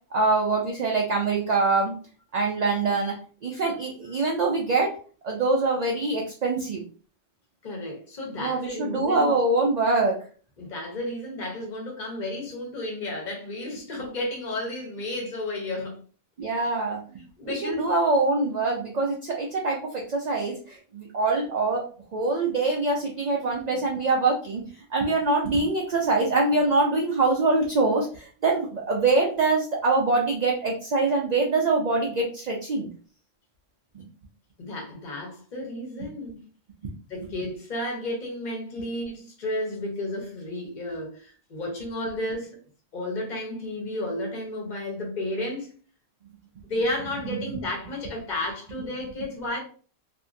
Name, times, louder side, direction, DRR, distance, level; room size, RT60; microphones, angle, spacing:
voice 1, 0.1-1.9 2.3-3.1 3.4-4.9 5.2-6.8 8.4-10.2 16.4-17.0 17.5-21.8 22.1-24.6 24.9-32.9 33.9-34.1 36.8-36.9, right 3 dB, 55° right, 0.4 m, -24 dB
voice 2, 7.6-9.3 10.6-16.0 17.1-17.9 34.6-36.4 37.1-42.6 42.9-45.7 46.7-49.6, left 1 dB, 40° left, 1.1 m, -32 dB
2.8 x 2.6 x 2.5 m
omnidirectional pair, 1.3 m